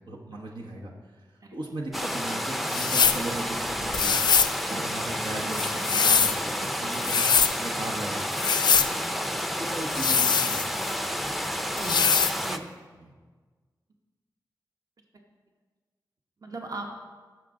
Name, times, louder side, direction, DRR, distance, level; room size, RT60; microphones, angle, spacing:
voice 1, 0.1-7.3 7.6-8.3 8.7-8.9 9.6-10.7 11.0-11.2 12.4-12.5 13.0-13.1, right 2 dB, 85° right, -1 dB, 1.2 m, -38 dB
sound 1, 1.9-12.6, equal, ahead, 0.5 m, -30 dB
sound 2, 2.7-3.2 3.9-4.6 5.5-6.4 6.9-7.5 8.3-8.9 9.9-10.9 11.8-12.4, left 6 dB, 70° left, 0.3 m, -23 dB
voice 2, 11.8-12.6 16.4-16.9, right 2 dB, 50° right, 2 dB, 1.1 m, -38 dB
14.0 x 6.0 x 3.8 m, 1.4 s
cardioid pair, 60°, 8 cm